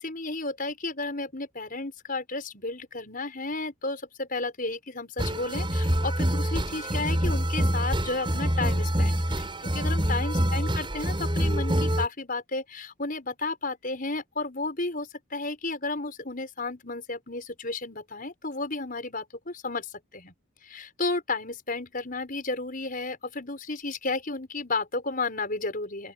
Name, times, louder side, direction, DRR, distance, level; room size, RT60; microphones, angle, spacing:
voice 1, 0.0-9.5 9.7-20.3 20.6-26.1, left 3 dB, 40° left, 5.8 m, -33 dB
sound 1, 5.2-12.1, equal, 25° right, 5.5 m, -26 dB
open air
head